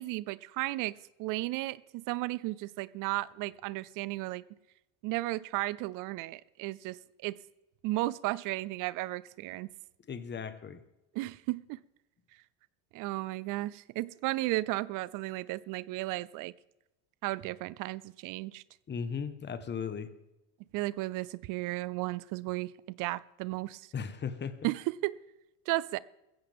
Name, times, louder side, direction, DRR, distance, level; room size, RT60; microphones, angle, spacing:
voice 1, 0.0-4.4 5.0-7.4 7.8-9.7 11.1-11.8 12.9-16.5 17.2-18.6 20.7-22.7 23.0-23.9 24.6-25.2 25.7-26.0, right 19 dB, 60° right, 0.6 m, -34 dB
voice 2, 10.1-10.8 18.9-20.1 23.9-24.7, left 6 dB, 30° left, 1.4 m, -37 dB
15.5 x 15.0 x 3.6 m
supercardioid pair, 100°, 36 cm